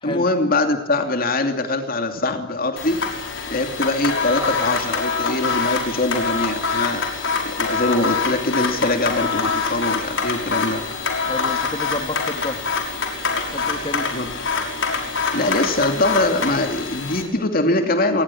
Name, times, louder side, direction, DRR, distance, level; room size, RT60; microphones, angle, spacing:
voice 1, 0.0-3.0 3.5-7.1 7.6-10.8 14.1-14.3 15.3-18.2, left 2 dB, 50° left, 6 dB, 2.8 m, -22 dB
sound 1, 2.8-17.2, left 4 dB, 75° left, 5.9 m, -25 dB
voice 2, 11.3-12.9 13.4-14.1, left 1 dB, 25° left, 7 dB, 2.2 m, -30 dB
26.5 x 20.5 x 8.7 m, 0.85 s
head